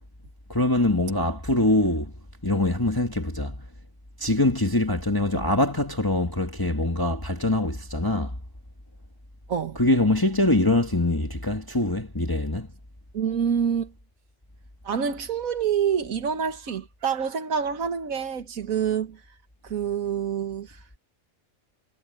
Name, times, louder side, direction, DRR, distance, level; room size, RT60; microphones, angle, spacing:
voice 1, 0.5-2.1 2.4-3.6 4.2-8.3 9.8-12.7, left 1 dB, 15° left, 1.9 m, -23 dB
voice 2, 9.5-9.8 13.1-13.9 14.8-19.2 19.6-20.8, right 7 dB, 85° right, 1.8 m, -27 dB
omnidirectional pair, 1.4 m